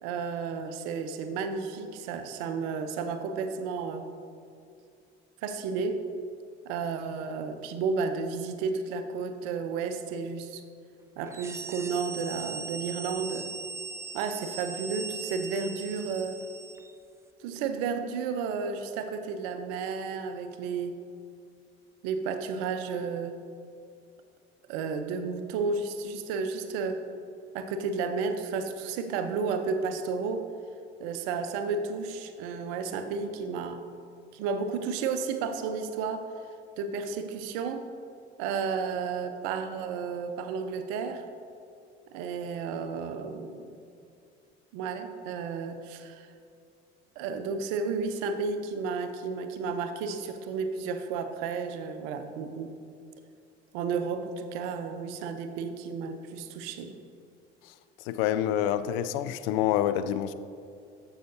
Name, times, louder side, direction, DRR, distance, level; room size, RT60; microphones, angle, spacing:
voice 1, 0.0-4.1 5.4-6.1 6.7-10.6 11.2-13.5 14.1-16.4 17.4-21.0 22.0-23.4 24.7-27.1 27.5-30.5 31.0-33.8 34.3-36.3 36.8-37.9 38.4-41.3 42.1-43.7 44.7-46.3 47.2-52.7 53.7-57.0, right 5 dB, 60° right, 0.7 m, -32 dB
sound 1, 11.2-16.9, right 4 dB, 10° right, 0.3 m, -40 dB
voice 2, 58.1-60.3, left 11 dB, 60° left, 0.4 m, -27 dB
14.0 x 5.7 x 2.7 m
figure-of-eight pair, 55°, 33 cm